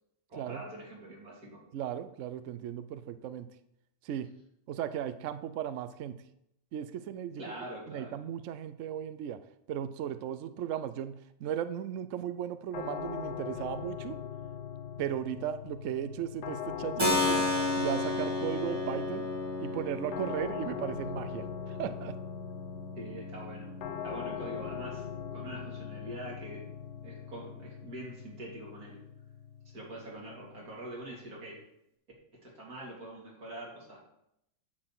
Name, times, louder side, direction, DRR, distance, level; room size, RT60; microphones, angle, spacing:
voice 1, 0.3-1.6 7.4-8.2 23.0-23.8 24.0-25.1 25.3-29.0 29.7-31.6 32.3-34.0, right 1 dB, 55° right, -3 dB, 3.4 m, -44 dB
voice 2, 1.7-3.5 4.0-4.3 4.7-6.2 6.7-7.4 7.9-9.4 9.7-14.2 15.0-17.4 17.8-19.3 19.6-22.2, right 10 dB, 75° right, 12 dB, 0.7 m, -36 dB
sound 1, 12.7-31.6, left 8 dB, 65° left, 1.2 m, -41 dB
Keyboard (musical), 17.0-25.6, left 2 dB, 15° right, 1.5 m, -34 dB
10.0 x 4.4 x 7.6 m, 0.78 s
omnidirectional pair, 1.9 m